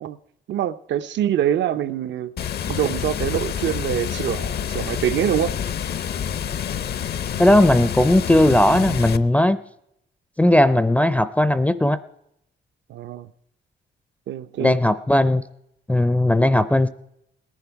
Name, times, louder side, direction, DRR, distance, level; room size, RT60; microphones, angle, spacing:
voice 1, 0.5-2.3 2.7-5.5 12.9-13.3 14.3-14.7, right 10 dB, 75° right, 0.6 m, -24 dB
Water, 2.4-9.2, left 8 dB, 60° left, 0.6 m, -28 dB
voice 2, 7.4-9.6 10.4-12.0 14.6-15.4 15.9-16.9, left 1 dB, 5° left, 0.4 m, -17 dB
18.5 x 10.5 x 4.6 m
cardioid pair, 130°, 19 cm